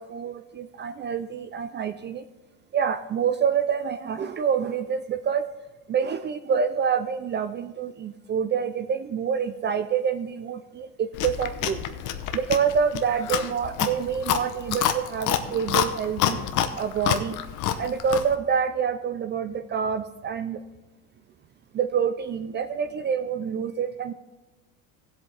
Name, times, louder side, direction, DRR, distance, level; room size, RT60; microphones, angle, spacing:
voice 1, 0.0-2.2 2.7-5.4 5.9-11.8 12.3-16.4 16.8-17.4 17.8-20.6 21.7-24.1, right 7 dB, 30° right, 10 dB, 0.4 m, -27 dB
Chewing mastication, 11.1-18.4, left 10 dB, 50° left, 0.9 m, -28 dB
16.0 x 8.0 x 3.4 m, 1.1 s
supercardioid pair, 120°, 39 cm